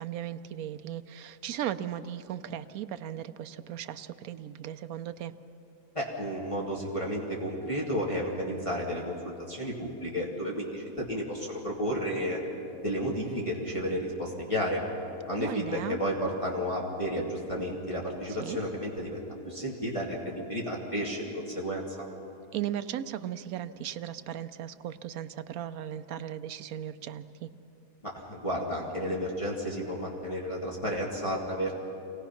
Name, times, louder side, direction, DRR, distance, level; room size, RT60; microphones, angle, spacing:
voice 1, 0.0-5.3 15.4-16.0 18.3-18.6 22.5-27.5, right 11 dB, 75° right, 11 dB, 1.1 m, -37 dB
voice 2, 5.9-9.2 9.5-12.4 12.8-14.8 15.3-21.8 28.0-31.7, equal, 20° left, -4 dB, 2.3 m, -32 dB
25.5 x 17.5 x 5.8 m, 2.9 s
omnidirectional pair, 1.5 m